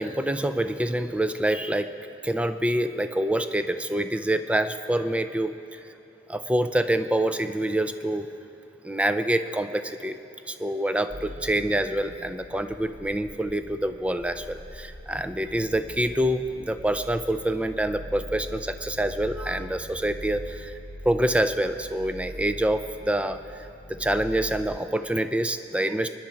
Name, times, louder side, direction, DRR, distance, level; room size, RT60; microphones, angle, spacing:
voice 1, 0.0-1.9 2.2-5.5 6.3-8.3 8.8-10.2 10.5-20.8 21.0-26.1, right 1 dB, 5° right, 10 dB, 0.4 m, -26 dB
sound 1, 11.1-24.8, equal, 40° right, 1.4 m, -42 dB
24.0 x 10.5 x 4.6 m, 2.7 s
head